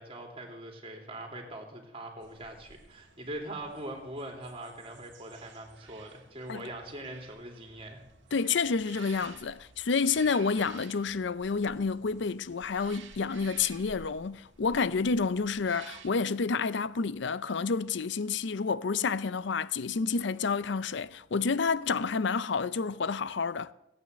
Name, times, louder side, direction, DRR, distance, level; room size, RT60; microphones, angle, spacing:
voice 1, 0.0-8.0, right 1 dB, 30° right, 2.8 m, -42 dB
sound 1, 2.2-16.1, right 5 dB, 65° right, 1.6 m, -53 dB
voice 2, 8.3-23.7, left 5 dB, 60° left, 0.5 m, -29 dB
17.0 x 8.9 x 7.9 m
head